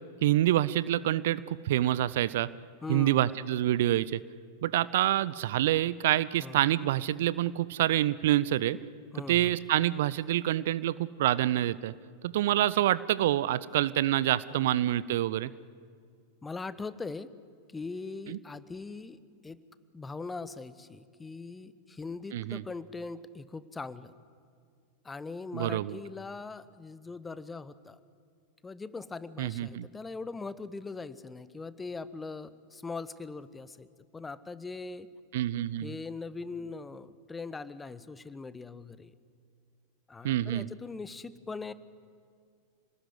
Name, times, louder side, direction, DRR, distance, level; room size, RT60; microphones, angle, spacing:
voice 1, 0.2-2.5 2.9-4.2 4.6-8.8 9.3-11.9 12.2-15.5 18.3-18.4 22.3-22.6 25.5-26.0 29.4-29.9 35.3-36.0 40.2-40.7, right 13 dB, 55° right, 19 dB, 0.6 m, -27 dB
voice 2, 2.8-3.3 6.4-6.6 9.1-9.5 14.5-14.7 16.4-17.3 17.7-19.6 19.9-24.1 25.0-28.0 28.6-33.9 34.1-35.1 35.8-39.1 40.1-41.7, left 4 dB, 10° left, 16 dB, 1.0 m, -41 dB
28.0 x 19.0 x 9.6 m, 2.2 s
figure-of-eight pair, 90°, 0 cm